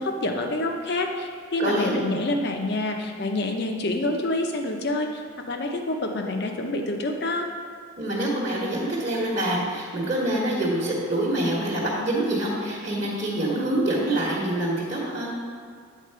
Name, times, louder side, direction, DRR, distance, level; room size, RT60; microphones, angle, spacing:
voice 1, 0.0-5.2 5.5-7.5, left 2 dB, 50° left, 3 dB, 0.7 m, -27 dB
voice 2, 1.6-2.0 8.0-15.3, right 1 dB, 35° right, -6 dB, 1.1 m, -26 dB
8.3 x 4.2 x 5.5 m, 2.2 s
head